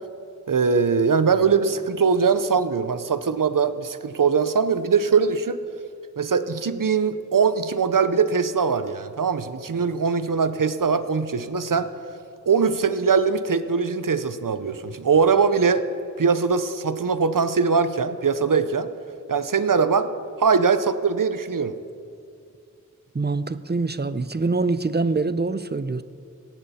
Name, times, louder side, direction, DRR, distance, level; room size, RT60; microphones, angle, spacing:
voice 1, 0.5-5.6 6.2-11.9 12.5-15.9 16.2-18.9 19.3-20.1 20.4-21.7, right 5 dB, 80° right, 12 dB, 0.7 m, -21 dB
voice 2, 23.1-26.0, right 3 dB, 30° right, 14 dB, 0.6 m, -24 dB
17.0 x 15.0 x 4.2 m, 2.5 s
wide cardioid pair, 45°, 32 cm